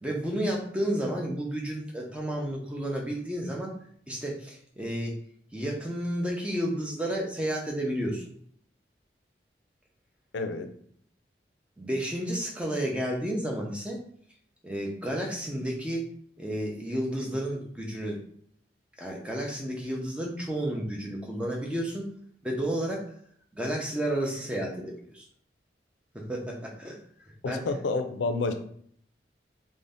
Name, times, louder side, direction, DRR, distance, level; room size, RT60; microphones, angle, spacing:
voice 1, 0.0-3.7 4.1-5.2 5.5-8.3 11.8-14.0 14.6-16.1 16.4-18.2 19.0-22.1 22.4-23.1 23.5-25.3 26.1-27.0 27.5-27.6, right 1 dB, 5° right, -1 dB, 0.5 m, -31 dB
voice 2, 10.3-10.7 27.4-28.5, left 3 dB, 85° left, 8 dB, 0.4 m, -29 dB
2.6 x 2.1 x 3.4 m, 0.62 s
head